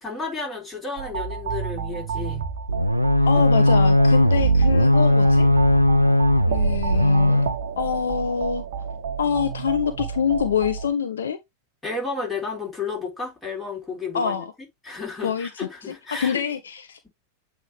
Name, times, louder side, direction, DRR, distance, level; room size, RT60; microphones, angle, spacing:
voice 1, 0.0-2.5 3.3-3.5 11.8-14.4 14.8-16.4, left 4 dB, 10° left, 3.6 m, -32 dB
sound 1, 1.0-10.9, right 7 dB, 55° right, 1.1 m, -31 dB
sound 2, 2.7-7.6, left 1 dB, 90° right, 0.6 m, -18 dB
voice 2, 3.3-5.5 6.5-7.4 7.8-8.6 9.2-11.4 14.1-14.4 15.2-15.5 15.9-17.0, left 7 dB, 65° left, 0.7 m, -25 dB
8.1 x 3.3 x 3.5 m
figure-of-eight pair, 90°, 0 cm